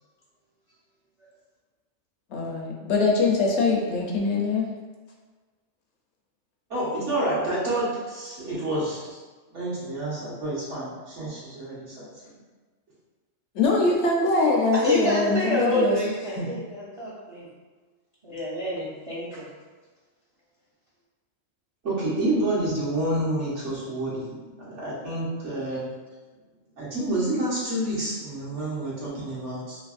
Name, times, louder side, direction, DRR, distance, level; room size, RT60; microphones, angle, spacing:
voice 1, 2.3-4.7 13.5-16.0 16.4-16.5, left 3 dB, 70° left, -1 dB, 0.8 m, -23 dB
voice 2, 6.7-9.2 9.5-12.1 21.8-25.9 26.8-29.8, right 1 dB, 65° right, -8 dB, 1.4 m, -28 dB
voice 3, 14.7-17.5 18.2-19.4, right 1 dB, 40° right, -8 dB, 0.5 m, -28 dB
3.3 x 2.8 x 2.4 m, 1.3 s
omnidirectional pair, 1.3 m